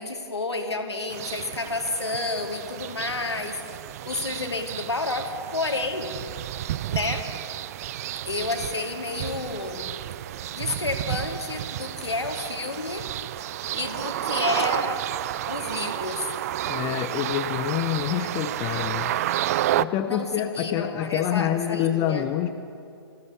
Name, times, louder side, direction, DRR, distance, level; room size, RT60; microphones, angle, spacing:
voice 1, 0.0-3.6 4.1-6.2 6.9-7.3 8.3-9.9 10.5-13.1 13.7-15.0 15.5-16.3 20.1-22.2, left 3 dB, 80° left, 4 dB, 2.6 m, -30 dB
sound 1, 1.1-19.9, right 13 dB, 35° right, 0.4 m, -31 dB
voice 2, 16.7-19.2 19.7-22.5, left 11 dB, 25° left, 7 dB, 0.8 m, -27 dB
25.5 x 16.0 x 7.1 m, 2.5 s
figure-of-eight pair, 125°, 14 cm